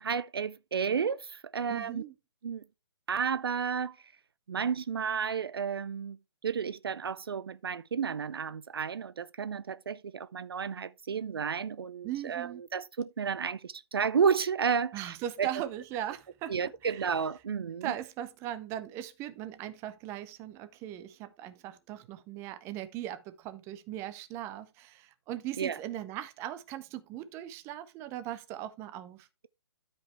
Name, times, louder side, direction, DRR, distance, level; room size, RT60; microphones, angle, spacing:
voice 1, 0.0-2.0 2.4-2.6 3.1-4.0 4.5-6.2 6.4-15.5 16.5-17.9 25.6-25.8, right 6 dB, 60° right, 0.4 m, -32 dB
voice 2, 1.7-2.1 12.0-12.6 14.9-16.6 16.8-17.1 17.8-29.3, right 12 dB, 20° right, 0.7 m, -39 dB
12.5 x 5.3 x 3.3 m
figure-of-eight pair, 135°, 14 cm